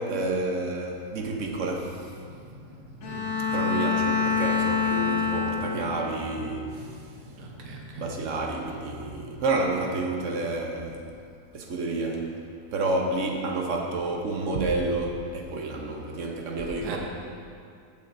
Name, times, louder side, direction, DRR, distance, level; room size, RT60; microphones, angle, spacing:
voice 1, 0.0-2.1 3.5-6.9 7.9-11.0 11.5-12.3 12.7-17.0, right 2 dB, 55° right, 1 dB, 1.1 m, -29 dB
sound 1, 2.1-9.9, right 1 dB, 35° right, 1.8 m, -46 dB
Bowed string instrument, 3.0-6.2, left 5 dB, 55° left, 1.0 m, -26 dB
voice 2, 3.0-3.3 7.4-8.0 16.8-17.0, right 4 dB, 85° right, 0 dB, 1.5 m, -41 dB
13.5 x 7.2 x 2.6 m, 2.4 s
omnidirectional pair, 1.7 m